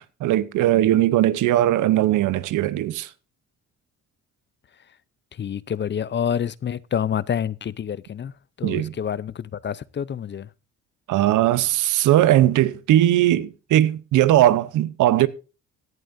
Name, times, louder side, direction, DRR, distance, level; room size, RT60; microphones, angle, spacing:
voice 1, 0.0-3.1 8.6-8.9 11.1-15.3, right 13 dB, 85° right, 0.8 m, -19 dB
voice 2, 5.4-8.3 8.6-10.5, left 8 dB, 35° left, 0.6 m, -27 dB
18.5 x 10.5 x 2.6 m
cardioid pair, 90°, 30 cm